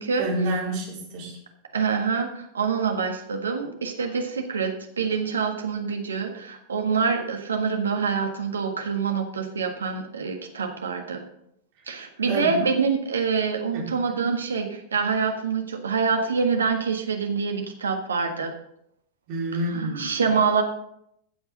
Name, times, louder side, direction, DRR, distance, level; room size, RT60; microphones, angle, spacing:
voice 1, 0.2-1.4 12.3-12.5 13.7-13.9 19.3-20.1, right 1 dB, 45° right, -3 dB, 4.2 m, -28 dB
voice 2, 1.7-11.2 11.9-18.5 19.7-20.6, right 5 dB, 70° right, 4 dB, 1.6 m, -26 dB
14.5 x 7.9 x 3.9 m, 0.75 s
figure-of-eight pair, 90°, 0 cm